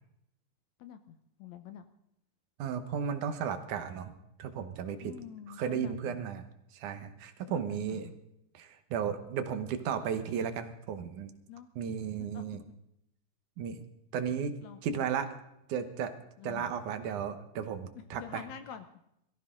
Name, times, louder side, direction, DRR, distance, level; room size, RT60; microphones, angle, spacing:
voice 1, 0.8-1.8 5.0-6.3 7.5-8.1 11.5-11.7 12.2-12.4 14.6-15.1 16.4-16.7 18.1-18.9, left 9 dB, 70° left, 9 dB, 1.8 m, -46 dB
voice 2, 2.6-4.1 4.4-5.1 5.5-6.4 6.7-8.1 8.5-11.3 11.8-12.6 13.6-13.8 14.1-14.6 14.8-15.3 15.7-16.1 16.4-18.4, right 7 dB, 70° right, 9 dB, 2.5 m, -34 dB
22.5 x 15.0 x 3.8 m, 0.80 s
omnidirectional pair, 3.8 m